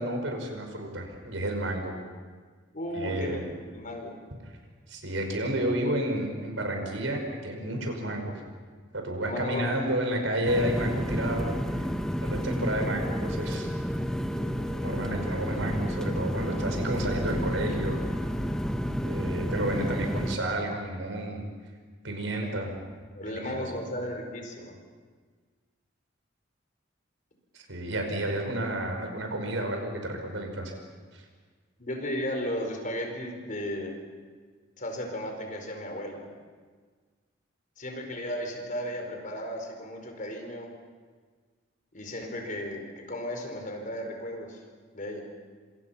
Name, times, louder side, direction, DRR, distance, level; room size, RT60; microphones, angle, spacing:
voice 1, 0.0-1.9 2.9-3.4 4.9-8.3 8.9-11.5 12.2-13.7 14.8-18.0 19.0-21.4 22.0-22.7 23.3-23.7 27.5-30.7, right 1 dB, 85° right, 3 dB, 5.4 m, -31 dB
voice 2, 2.7-4.1 9.2-9.9 22.4-22.5 23.1-24.8 31.8-34.0 34.8-36.2 37.8-40.7 41.9-44.6 44.9-45.2, equal, 45° left, 3 dB, 4.9 m, -35 dB
sound 1, 10.4-20.4, equal, 5° left, 1.2 m, -30 dB
26.5 x 26.5 x 5.8 m, 1.5 s
head